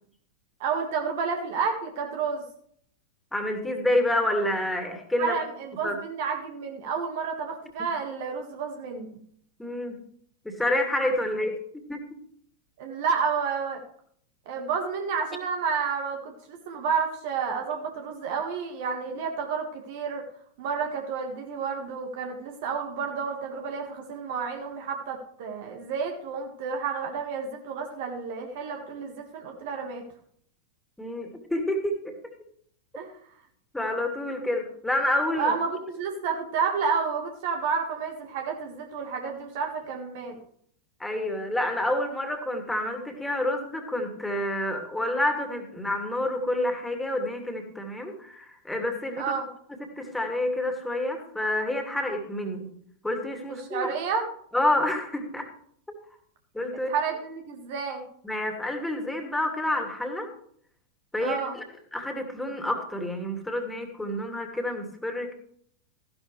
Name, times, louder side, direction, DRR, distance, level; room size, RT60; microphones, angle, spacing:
voice 1, 0.6-2.4 5.2-9.1 12.8-13.8 14.4-20.2 20.6-30.0 32.9-33.4 35.4-40.4 49.2-49.5 53.5-54.3 56.9-58.0 61.2-61.5, right 5 dB, 50° right, 3 dB, 1.7 m, -30 dB
voice 2, 3.3-5.4 5.8-6.0 9.6-10.0 10.4-11.6 11.9-12.0 31.0-32.3 33.7-35.5 41.0-49.2 50.0-52.7 53.0-53.9 54.5-55.5 56.5-56.9 58.2-60.3 61.1-61.6 61.9-65.3, left 1 dB, 5° left, 4 dB, 2.6 m, -28 dB
15.0 x 11.5 x 3.3 m, 0.63 s
figure-of-eight pair, 90°, 0 cm